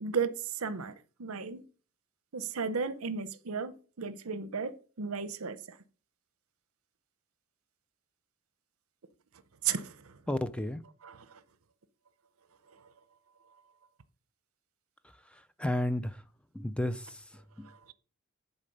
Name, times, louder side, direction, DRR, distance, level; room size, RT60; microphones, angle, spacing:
voice 1, 0.0-0.9 1.2-1.6 2.3-5.6 9.6-10.1 11.0-11.4 17.7-17.9, right 6 dB, 80° right, 0.7 m, -34 dB
voice 2, 10.3-10.8 15.6-16.1 16.6-17.1 17.6-17.7, left 1 dB, 5° left, 0.4 m, -31 dB
11.0 x 4.1 x 5.3 m
head